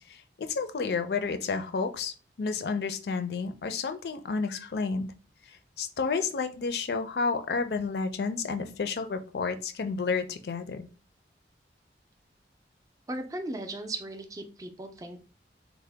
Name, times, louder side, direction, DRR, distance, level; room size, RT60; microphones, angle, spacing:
voice 1, 0.1-5.1 5.8-10.9, left 4 dB, 65° left, 9 dB, 0.4 m, -31 dB
voice 2, 13.1-15.2, right 2 dB, 20° right, 5 dB, 0.4 m, -37 dB
3.7 x 2.0 x 3.3 m, 0.35 s
head